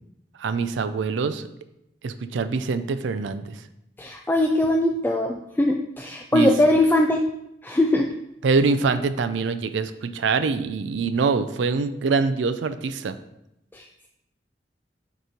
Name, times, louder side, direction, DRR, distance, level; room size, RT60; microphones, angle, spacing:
voice 1, 0.4-1.4 2.0-3.6 6.3-6.5 8.4-13.2, right 4 dB, 90° right, 11 dB, 0.4 m, -24 dB
voice 2, 4.0-7.2 7.6-8.1 13.7-14.1, left 1 dB, 10° left, 2 dB, 0.3 m, -21 dB
6.7 x 3.1 x 5.0 m, 0.84 s
head